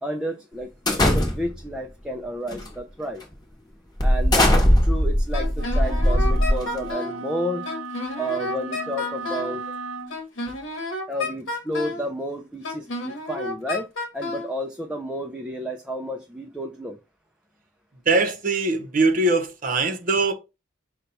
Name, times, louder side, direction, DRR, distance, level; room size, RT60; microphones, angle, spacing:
voice 1, 0.0-0.7 1.0-3.2 4.0-4.5 4.8-7.7 8.2-9.6 11.1-13.9 14.1-17.0, equal, 5° right, 0.3 m, -31 dB
sound 1, 0.9-1.7 2.5-2.7 3.2-3.3 4.0-6.9, equal, 20° left, 1.0 m, -20 dB
Wind instrument woodwind instrument, 5.3-7.2 7.7-9.6 10.1-12.1 12.6-14.5, left 2 dB, 70° left, 1.0 m, -31 dB
sound 2, 5.5-10.2, right 3 dB, 85° right, 0.7 m, -35 dB
voice 2, 18.1-20.3, right 3 dB, 45° right, 0.6 m, -21 dB
5.3 x 2.3 x 4.0 m
head